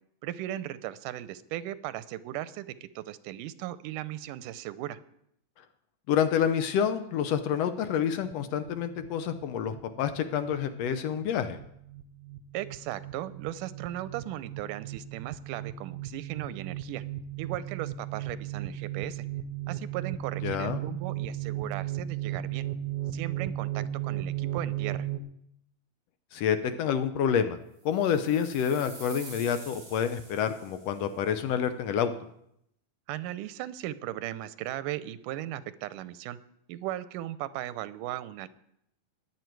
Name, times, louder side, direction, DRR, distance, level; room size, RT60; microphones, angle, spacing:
voice 1, 0.2-5.0 12.5-17.0 17.4-19.2 19.7-22.7 23.1-25.1 33.1-36.4 36.7-38.5, right 13 dB, 90° right, 15 dB, 2.2 m, -37 dB
voice 2, 6.1-11.6 20.4-20.8 26.3-27.6 27.8-32.1, left 8 dB, 75° left, 9 dB, 1.6 m, -28 dB
sound 1, 8.2-25.2, right 12 dB, 70° right, 2.2 m, -36 dB
sound 2, 27.9-31.1, right 3 dB, 45° right, 4.8 m, -48 dB
21.0 x 7.8 x 4.6 m, 0.75 s
omnidirectional pair, 3.6 m